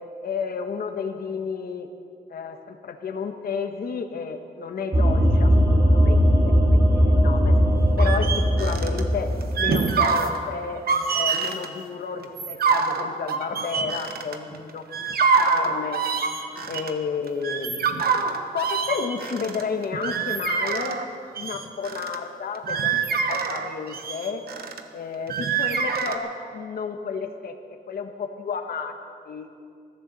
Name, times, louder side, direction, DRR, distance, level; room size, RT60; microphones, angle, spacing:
voice 1, 0.2-1.9 2.3-6.8 7.0-7.5 8.0-9.3 9.6-10.8 11.1-16.0 16.7-18.0 18.5-21.0 21.3-24.4 24.9-27.5 27.9-29.0 29.3-29.5, left 5 dB, 75° left, 6 dB, 1.2 m, -31 dB
sound 1, 4.9-10.1, equal, 25° right, 1.8 m, -19 dB
sound 2, 8.0-9.0 9.4-10.4 10.8-11.7 12.2-14.6 14.9-16.9 17.3-21.0 21.4-22.2 22.5-24.8 25.3-26.2, right 5 dB, 75° right, 1.1 m, -25 dB
21.5 x 14.5 x 4.1 m, 2.3 s
wide cardioid pair, 165°, 16 cm